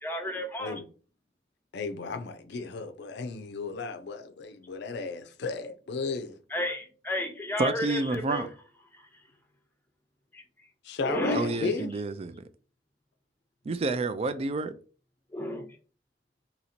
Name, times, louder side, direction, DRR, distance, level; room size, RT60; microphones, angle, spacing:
voice 1, 0.0-0.8 6.5-8.5 8.9-9.2 10.3-10.4 11.0-11.7 15.3-15.6, left 1 dB, 10° left, 0.6 m, -33 dB
voice 2, 1.7-6.4 10.8-11.9, left 4 dB, 65° left, 0.5 m, -34 dB
voice 3, 7.6-8.5 11.3-12.5 13.6-14.7, right 3 dB, 35° right, 0.3 m, -29 dB
2.9 x 2.7 x 4.2 m
head